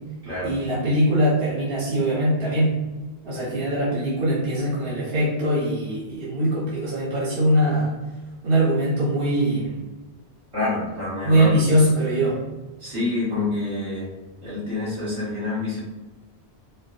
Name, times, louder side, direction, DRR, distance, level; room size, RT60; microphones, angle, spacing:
voice 1, 0.4-2.8 3.2-7.9 8.4-9.8 11.2-12.4, right 1 dB, 60° right, -8 dB, 1.1 m, -22 dB
voice 2, 10.5-11.5 12.8-14.1 14.4-15.8, left 2 dB, 85° right, -9 dB, 1.7 m, -27 dB
4.5 x 2.0 x 2.4 m, 1.2 s
omnidirectional pair, 1.1 m